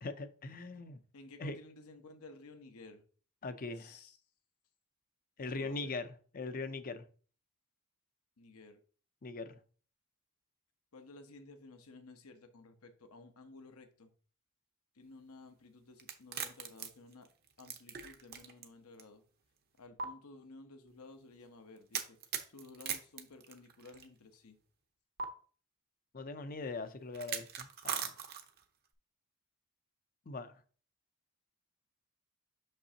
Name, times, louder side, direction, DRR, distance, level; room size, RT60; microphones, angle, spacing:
voice 1, 0.0-1.0 1.4-1.6 3.4-4.0 5.4-7.0 9.2-9.6 26.1-28.1 30.3-30.6, left 3 dB, 40° left, 0.6 m, -41 dB
voice 2, 1.1-3.0 3.8-4.2 5.5-6.0 8.4-8.8 10.9-14.1 15.0-17.3 17.6-19.2 19.8-22.2 22.5-24.6, left 3 dB, 80° left, 0.9 m, -54 dB
sound 1, 16.0-18.7 19.0-19.1 20.0-20.1 21.9-24.0 25.2-25.3 27.1-28.6, right 7 dB, 45° right, 0.8 m, -40 dB
6.5 x 5.4 x 2.8 m
head